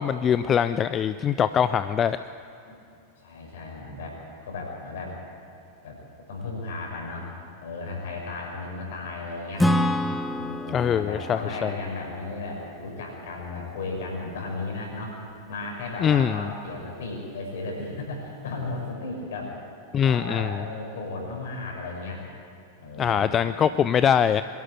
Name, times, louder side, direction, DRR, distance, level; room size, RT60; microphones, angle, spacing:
voice 1, 0.0-2.2 10.7-11.7 16.0-16.5 19.9-20.5 23.0-24.4, left 8 dB, 25° left, 13 dB, 0.4 m, -23 dB
voice 2, 2.7-5.2 5.8-6.0 6.3-7.3 7.6-9.7 10.3-15.2 15.5-19.5 20.0-22.2 22.8-23.3, left 3 dB, 60° left, 0 dB, 5.9 m, -35 dB
Acoustic guitar / Strum, 9.6-13.2, left 1 dB, 5° left, 1.0 m, -28 dB
22.5 x 13.0 x 9.1 m, 2.6 s
figure-of-eight pair, 90°, 0 cm